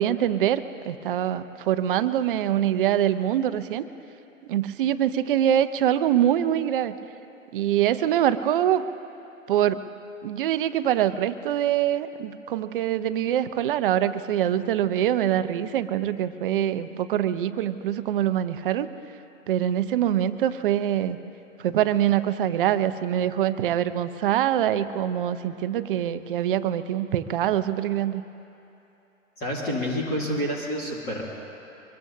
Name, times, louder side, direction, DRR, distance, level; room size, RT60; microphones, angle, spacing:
voice 1, 0.0-3.9 4.4-6.9 7.5-8.8 9.5-9.8 10.2-18.9 19.5-21.2 21.6-28.2, right 11 dB, 40° right, 12 dB, 0.7 m, -24 dB
voice 2, 29.4-31.2, equal, 25° left, -4 dB, 2.6 m, -28 dB
24.0 x 21.5 x 2.8 m, 2.9 s
figure-of-eight pair, 115°, 40 cm